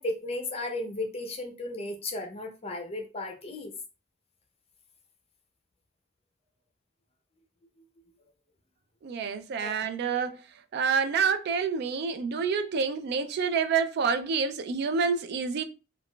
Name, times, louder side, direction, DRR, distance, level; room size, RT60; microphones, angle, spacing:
voice 1, 0.0-3.7 9.6-9.7, left 2 dB, 30° left, 0.6 m, -34 dB
voice 2, 9.0-10.4 10.7-15.6, right 5 dB, 55° right, 0.3 m, -28 dB
3.6 x 2.3 x 2.3 m
head